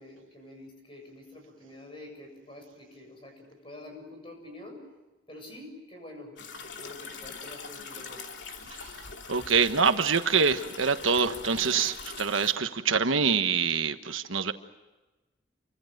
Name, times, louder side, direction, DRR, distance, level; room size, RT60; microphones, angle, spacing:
voice 1, 0.0-4.8 5.3-8.2, left 2 dB, 25° left, 4 dB, 7.3 m, -47 dB
sound 1, 6.4-12.5, left 4 dB, 70° left, 2.7 m, -42 dB
voice 2, 9.3-14.5, right 5 dB, 90° right, 9 dB, 1.3 m, -25 dB
29.0 x 25.0 x 6.7 m, 1.1 s
head